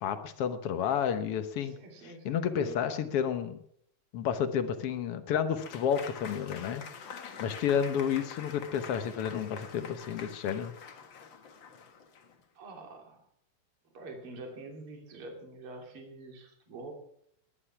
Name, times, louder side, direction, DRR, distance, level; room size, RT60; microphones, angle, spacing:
voice 1, 0.0-1.7 2.0-3.6 4.1-10.7, left 8 dB, 70° left, 9 dB, 1.4 m, -31 dB
voice 2, 1.6-2.8 12.6-13.2 13.9-16.9, right 3 dB, 40° right, 2 dB, 3.6 m, -45 dB
Applause / Crowd, 5.6-12.4, left 6 dB, 50° left, 1.4 m, -46 dB
20.0 x 11.5 x 5.9 m, 0.69 s
omnidirectional pair, 4.0 m